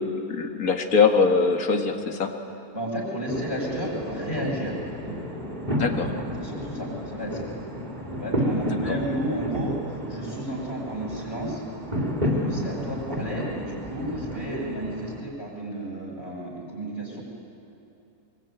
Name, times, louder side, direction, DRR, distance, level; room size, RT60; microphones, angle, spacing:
voice 1, 0.0-2.4 5.8-6.1 8.7-9.0, left 5 dB, 60° left, 5 dB, 2.2 m, -23 dB
voice 2, 2.7-4.7 6.4-7.5 8.1-9.8 10.1-11.6 12.3-17.2, right 1 dB, 40° left, -2 dB, 7.4 m, -32 dB
sound 1, 3.3-15.2, equal, 25° right, 3.1 m, -31 dB
24.5 x 23.0 x 9.3 m, 2.8 s
omnidirectional pair, 1.7 m